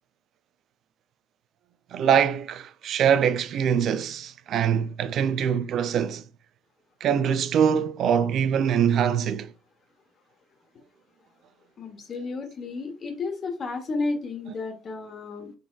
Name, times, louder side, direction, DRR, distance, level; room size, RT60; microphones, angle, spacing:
voice 1, 1.9-6.2 7.0-9.5, right 8 dB, 50° right, 0.3 m, -23 dB
voice 2, 11.8-15.5, left 3 dB, 35° left, 1.0 m, -32 dB
3.9 x 3.6 x 2.3 m
cardioid pair, 135°, 0 cm